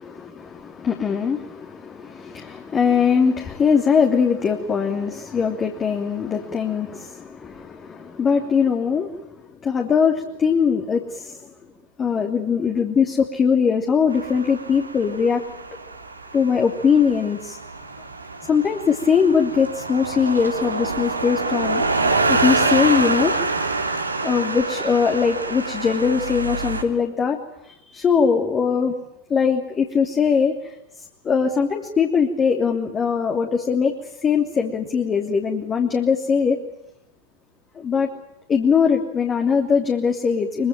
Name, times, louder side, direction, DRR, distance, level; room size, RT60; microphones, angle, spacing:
voice 1, 0.0-9.3 9.6-11.5 12.0-15.4 16.3-17.6 18.4-23.3 24.2-27.4 27.6-28.9 29.3-33.9 34.2-36.6 37.7-38.1 38.5-40.7, left 6 dB, 25° left, 3 dB, 3.0 m, -21 dB
sound 1, 14.1-26.8, right 3 dB, 85° right, 3.2 m, -26 dB
24.5 x 24.5 x 9.0 m, 0.83 s
figure-of-eight pair, 90°, 0 cm